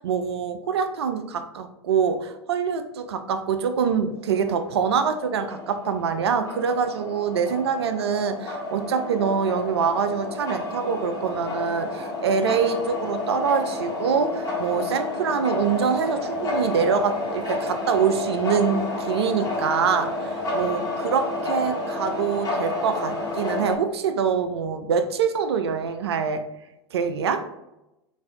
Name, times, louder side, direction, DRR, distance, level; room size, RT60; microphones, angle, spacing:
voice 1, 0.0-26.4 26.9-27.4, right 6 dB, 65° right, 8 dB, 0.4 m, -25 dB
sound 1, 4.5-23.7, left 2 dB, 20° left, 1.3 m, -30 dB
sound 2, 15.6-23.7, equal, 5° right, 1.0 m, -44 dB
3.3 x 2.5 x 2.7 m, 0.93 s
figure-of-eight pair, 90°, 15 cm